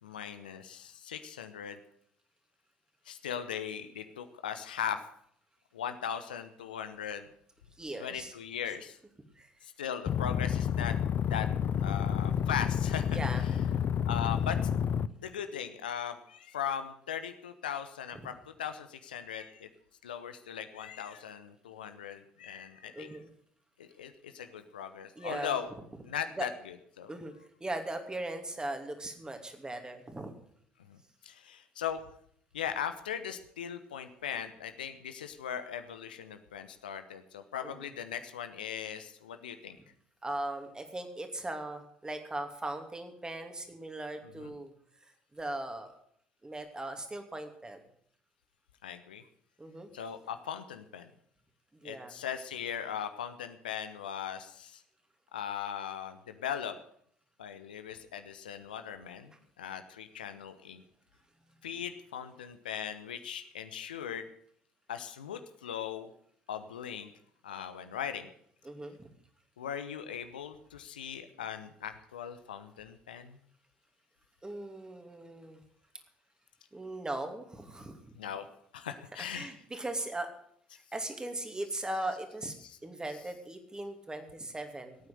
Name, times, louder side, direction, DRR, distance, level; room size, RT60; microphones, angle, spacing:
voice 1, 0.0-1.8 3.1-5.0 5.7-7.3 8.0-9.0 9.6-10.9 11.2-11.5 11.8-13.2 14.0-14.7 15.2-19.7 20.0-23.1 23.8-25.7 26.0-27.1 30.9-31.0 31.2-32.0 32.5-39.8 44.4-44.5 48.8-49.2 49.9-51.1 51.8-54.8 55.3-56.8 57.4-60.8 61.6-64.2 64.9-66.1 66.5-67.1 67.4-68.3 69.6-73.4 78.1-78.5 78.7-79.5 82.6-82.8, left 8 dB, 75° left, 9 dB, 1.0 m, -39 dB
voice 2, 7.8-8.3 9.4-9.5 13.1-13.4 22.9-23.3 25.2-25.5 26.4-26.5 27.1-27.3 27.6-30.3 37.6-37.9 40.2-44.7 45.0-45.9 46.4-47.8 49.6-49.9 51.7-52.1 68.6-69.1 74.4-75.6 76.7-78.1 79.3-80.3 80.7-82.5 82.8-85.0, right 2 dB, 15° right, 6 dB, 2.8 m, -39 dB
sound 1, 10.1-15.1, left 8 dB, 40° left, 0.6 m, -29 dB
16.5 x 9.2 x 7.8 m, 0.65 s
figure-of-eight pair, 55°, 5 cm